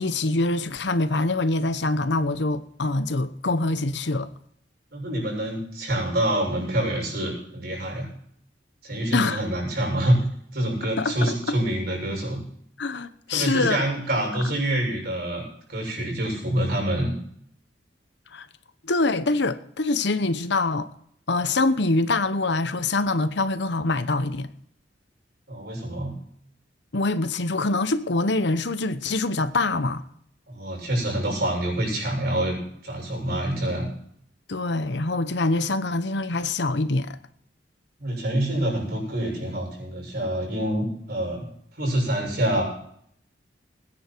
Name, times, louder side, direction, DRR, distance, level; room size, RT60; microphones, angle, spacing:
voice 1, 0.0-4.3 9.1-9.4 11.0-11.3 12.8-13.8 18.3-18.5 18.8-20.9 21.3-24.5 26.9-30.0 34.5-37.2, left 2 dB, 65° left, 0.9 m, -24 dB
voice 2, 4.9-8.1 8.8-10.2 10.5-12.4 13.3-17.1 25.5-26.2 30.5-33.9 38.0-41.5 41.8-42.6, right 1 dB, 60° right, 7.2 m, -26 dB
20.0 x 10.0 x 4.6 m
head